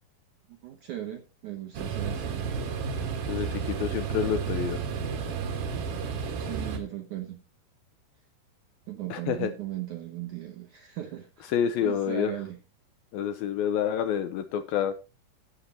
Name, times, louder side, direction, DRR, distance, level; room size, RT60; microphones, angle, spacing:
voice 1, 0.5-2.5 6.4-7.4 8.9-12.6, right 13 dB, 80° right, 4 dB, 1.8 m, -38 dB
sound 1, 1.7-6.8, right 6 dB, 65° right, 3.2 m, -32 dB
voice 2, 3.3-4.8 9.1-9.5 11.5-12.3 13.1-14.9, left 9 dB, 80° left, 9 dB, 2.2 m, -28 dB
17.0 x 6.8 x 2.8 m, 0.29 s
omnidirectional pair, 4.8 m